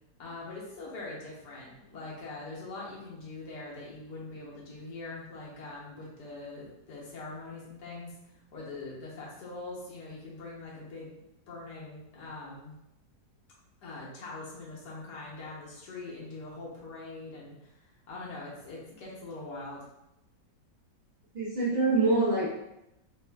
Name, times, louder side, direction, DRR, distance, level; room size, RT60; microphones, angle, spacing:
voice 1, 0.2-8.2 8.5-12.8 13.8-19.9, left 2 dB, 70° left, -5 dB, 1.4 m, -43 dB
voice 2, 21.3-22.5, right 3 dB, 50° right, -10 dB, 0.5 m, -25 dB
4.0 x 2.4 x 2.2 m, 0.88 s
omnidirectional pair, 1.9 m